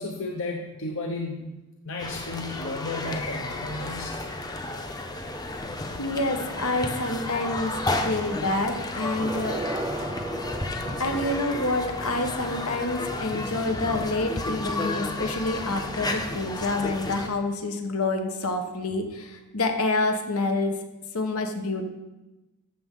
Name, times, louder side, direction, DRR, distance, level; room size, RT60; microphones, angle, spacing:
voice 1, 0.0-1.5 1.8-4.1, left 2 dB, 60° left, 1 dB, 1.0 m, -33 dB
sound 1, 2.0-17.3, left 2 dB, 20° left, 0.8 m, -32 dB
voice 2, 5.9-7.7 8.0-9.6 11.0-20.8 21.1-21.8, left 2 dB, 80° left, 5 dB, 1.3 m, -27 dB
sound 2, 9.0-13.9, right 2 dB, 15° right, 0.4 m, -38 dB
13.5 x 6.9 x 3.8 m, 1.0 s
head